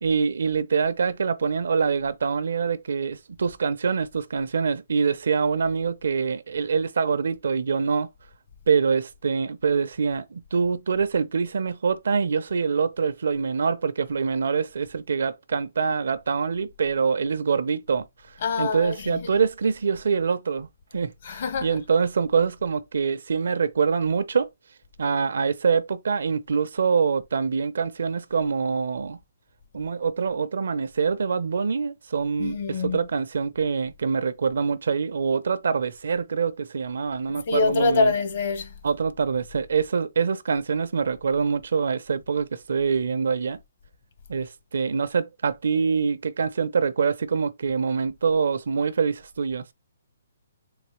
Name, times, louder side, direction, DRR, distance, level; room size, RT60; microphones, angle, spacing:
voice 1, 0.0-8.1 8.7-18.1 18.6-20.7 20.9-24.5 25.0-29.2 29.7-38.1 38.8-43.6 44.3-49.6, right 5 dB, 75° right, 0.6 m, -25 dB
voice 2, 18.4-19.4 21.2-21.8 32.4-33.0 37.3-38.7, left 4 dB, 50° left, 1.0 m, -25 dB
4.0 x 3.0 x 3.2 m
hypercardioid pair, 160°, 0 cm